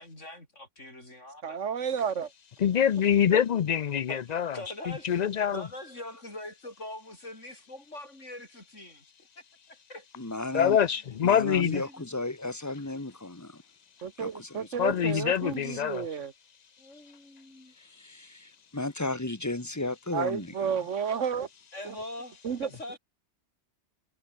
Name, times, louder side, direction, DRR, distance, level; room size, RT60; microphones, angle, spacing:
voice 1, 0.0-2.0 4.1-5.2 5.5-9.0 9.7-10.0 10.5-11.0 11.6-12.1 16.8-17.7 21.7-23.0, left 1 dB, 75° left, 8.2 m, -43 dB
voice 2, 1.4-2.3 14.0-16.3 20.1-21.5 21.8-21.9 22.4-22.7, right 7 dB, 80° right, 1.6 m, -31 dB
voice 3, 2.6-4.6 5.0-5.6 10.5-11.8 14.8-16.1, left 8 dB, 50° left, 0.5 m, -25 dB
voice 4, 10.2-10.8 11.2-13.6 14.2-15.4 15.7-15.8 17.8-20.8, left 2 dB, 15° left, 1.8 m, -35 dB
omnidirectional pair, 1.3 m